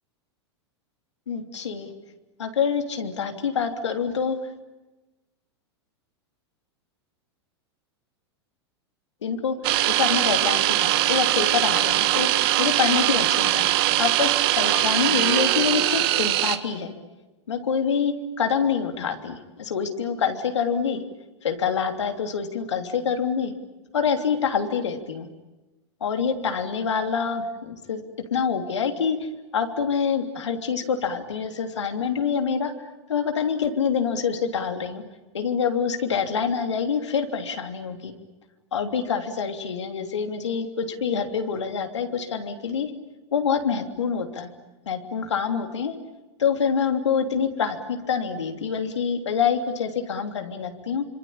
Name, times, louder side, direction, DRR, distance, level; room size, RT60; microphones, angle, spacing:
voice 1, 1.3-1.9 2.4-4.4 9.2-9.5 9.9-13.7 14.0-16.9 17.5-21.0 21.4-23.5 23.9-25.3 26.0-28.0 28.3-32.7 33.1-35.0 35.3-38.1 38.7-42.9 43.3-44.5 44.9-45.9 46.4-51.0, left 6 dB, 85° left, 5 dB, 3.1 m, -26 dB
sound 1, 9.6-16.6, right 14 dB, 60° right, 1.9 m, -21 dB
26.5 x 26.0 x 8.7 m, 1.1 s
hypercardioid pair, 105°, 15 cm